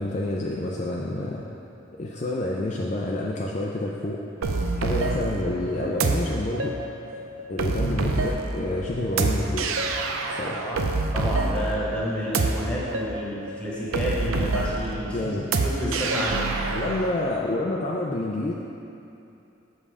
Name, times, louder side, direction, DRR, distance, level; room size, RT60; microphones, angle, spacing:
voice 1, 0.0-1.4 1.9-4.2 4.7-6.7 7.5-9.7 10.3-10.6 15.1-15.5 16.7-18.5, left 1 dB, 35° left, -3 dB, 0.4 m, -28 dB
sound 1, 4.4-17.1, right 3 dB, 90° right, 0.5 m, -27 dB
voice 2, 10.4-10.8 11.1-15.3 15.6-16.4 16.7-16.8, equal, 5° left, -7 dB, 1.3 m, -30 dB
7.1 x 5.4 x 4.9 m, 2.7 s
head